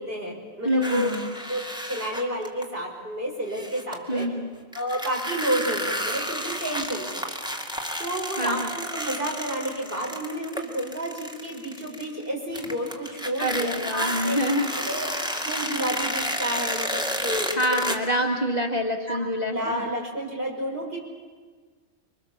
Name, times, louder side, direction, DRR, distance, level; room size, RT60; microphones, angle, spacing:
voice 1, 0.0-1.1 1.5-4.2 4.7-7.3 8.0-14.4 14.8-15.1 15.4-17.8 18.2-18.3 19.1-19.2 19.5-21.0, right 1 dB, 40° right, -1 dB, 5.9 m, -30 dB
voice 2, 0.6-1.3 4.1-4.5 8.4-8.7 13.4-14.7 17.5-20.0, equal, 30° left, 1 dB, 1.7 m, -26 dB
sound 1, 0.8-2.6 3.5-4.3 4.7-12.3 12.5-17.9, equal, 5° right, 2.3 m, -31 dB
26.0 x 24.0 x 7.3 m, 1.5 s
omnidirectional pair, 1.4 m